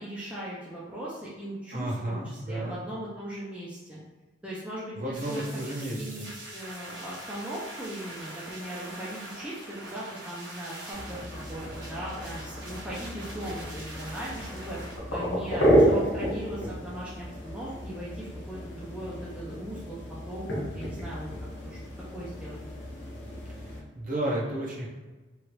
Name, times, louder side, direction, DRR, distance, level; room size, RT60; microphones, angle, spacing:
voice 1, 0.0-4.0 4.4-5.4 5.7-6.3 6.5-11.2 11.5-14.8 15.1-20.0 20.3-21.3 21.6-21.8 22.1-22.6, right 1 dB, 5° right, -8 dB, 0.5 m, -38 dB
voice 2, 1.7-2.8 5.0-6.2 23.9-24.9, right 1 dB, 40° right, -4 dB, 0.7 m, -32 dB
sound 1, 5.1-15.0, right 1 dB, 60° right, 1.1 m, -43 dB
sound 2, 10.9-23.8, equal, 70° left, 0.9 m, -31 dB
3.0 x 2.4 x 3.0 m, 1.2 s
head